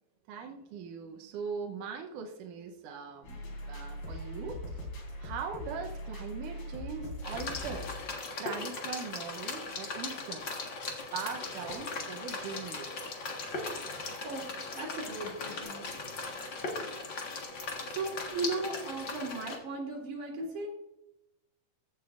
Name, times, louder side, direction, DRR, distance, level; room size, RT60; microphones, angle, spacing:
voice 1, 0.3-4.8 5.2-7.9 8.4-10.4 11.1-13.1, right 6 dB, 75° right, 3 dB, 1.9 m, -41 dB
sound 1, 3.2-15.6, left 1 dB, 65° left, 4.6 m, -45 dB
sound 2, 7.2-19.6, left 3 dB, 85° left, 1.0 m, -38 dB
voice 2, 14.2-16.1 17.9-20.7, right 2 dB, 50° right, -2 dB, 4.4 m, -37 dB
15.0 x 9.0 x 2.5 m, 0.89 s
omnidirectional pair, 4.6 m